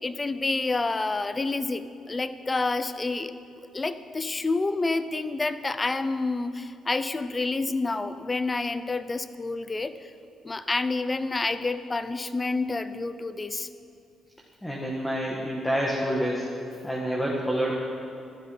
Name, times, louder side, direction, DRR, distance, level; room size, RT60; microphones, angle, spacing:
voice 1, 0.0-3.3 3.7-9.9 10.4-13.7, left 3 dB, 25° left, 13 dB, 0.7 m, -28 dB
voice 2, 14.6-16.4 16.8-17.7, equal, 5° left, -3 dB, 2.0 m, -27 dB
15.0 x 12.5 x 5.5 m, 2.5 s
cardioid pair, 90°, 0 cm